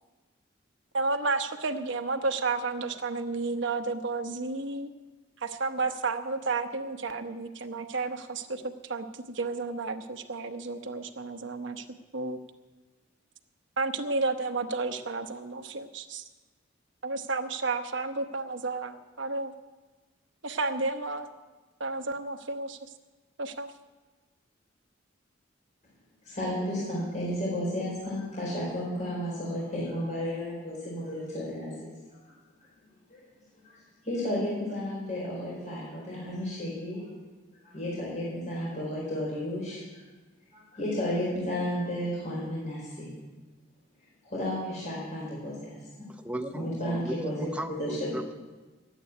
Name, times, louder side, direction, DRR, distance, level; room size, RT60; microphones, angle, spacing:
voice 1, 0.9-4.9 5.4-11.8 12.1-12.4 13.8-16.2 17.0-19.5 20.4-21.3 21.8-22.8 23.4-23.7, right 3 dB, 70° right, 6 dB, 1.0 m, -32 dB
voice 2, 26.2-31.9 32.3-32.4 33.1-33.3 33.6-33.8 34.0-37.0 37.6-39.8 40.5-43.1 44.2-45.8 46.5-48.1, left 1 dB, 40° left, -6 dB, 4.5 m, -33 dB
voice 3, 46.1-48.3, right 1 dB, 5° right, 6 dB, 0.7 m, -36 dB
12.5 x 9.1 x 9.3 m, 1.3 s
head